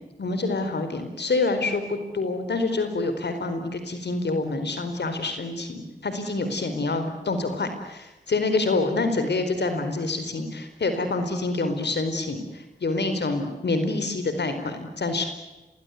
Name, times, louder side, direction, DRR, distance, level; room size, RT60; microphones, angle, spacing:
voice 1, 0.2-15.3, left 3 dB, 80° left, 8 dB, 4.6 m, -27 dB
28.0 x 21.0 x 9.5 m, 1.0 s
cardioid pair, 55°, 17 cm